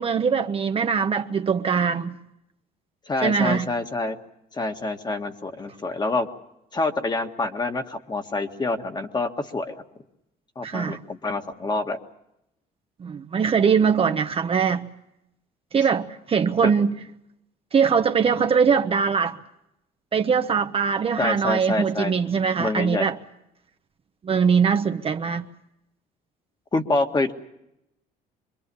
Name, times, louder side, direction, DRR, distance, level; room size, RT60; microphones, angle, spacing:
voice 1, 0.0-2.2 3.2-3.7 10.6-11.0 13.0-14.9 15.7-17.0 17.7-19.4 20.1-23.2 24.2-25.4, right 6 dB, 35° right, 1.0 m, -22 dB
voice 2, 3.1-4.2 4.5-6.3 6.7-9.8 10.6-12.0 16.6-16.7 21.2-22.1 22.6-23.0 26.7-27.3, left 2 dB, 25° left, 1.8 m, -26 dB
25.5 x 22.0 x 7.0 m
cardioid pair, 110°, 17 cm